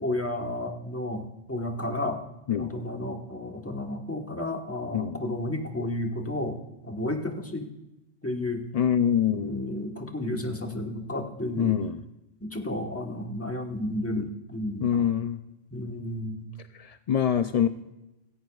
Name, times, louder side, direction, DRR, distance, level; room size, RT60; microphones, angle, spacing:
voice 1, 0.0-2.2 2.6-7.7 8.2-8.6 9.3-11.8 12.4-15.1 15.7-16.5, left 1 dB, 15° left, 3 dB, 1.2 m, -32 dB
voice 2, 8.7-9.6 11.6-12.0 14.8-15.4 16.8-17.7, left 9 dB, 65° left, 10 dB, 0.3 m, -25 dB
17.0 x 15.5 x 2.4 m, 0.93 s
omnidirectional pair, 1.2 m